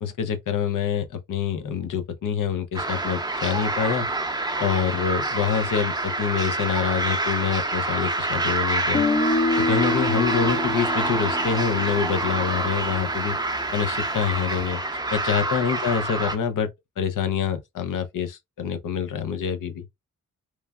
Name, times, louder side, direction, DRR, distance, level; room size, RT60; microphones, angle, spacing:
voice 1, 0.0-4.1 4.6-9.0 9.6-13.4 13.7-14.8 15.1-16.7 17.0-19.9, left 7 dB, 75° left, 0.6 m, -26 dB
sound 1, 2.8-16.4, right 2 dB, 15° right, 0.6 m, -27 dB
Guitar, 8.9-12.9, left 3 dB, 30° left, 0.6 m, -27 dB
3.1 x 2.2 x 2.2 m
cardioid pair, 75°, 32 cm